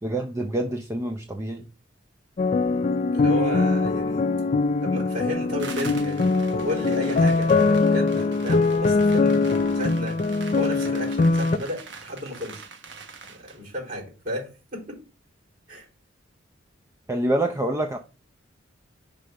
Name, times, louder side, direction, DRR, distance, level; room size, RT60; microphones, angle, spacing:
voice 1, 0.0-1.6 17.1-18.0, right 1 dB, 15° right, 0.5 m, -26 dB
sound 1, 2.4-11.6, left 3 dB, 35° left, 0.4 m, -22 dB
voice 2, 3.1-4.3 4.8-12.6 13.3-15.0 15.7-15.9, equal, 50° right, 3.6 m, -33 dB
sound 2, 5.6-13.6, right 5 dB, 65° right, 1.2 m, -43 dB
Bass guitar, 6.3-10.5, equal, 30° right, 2.4 m, -44 dB
5.2 x 5.1 x 5.7 m
head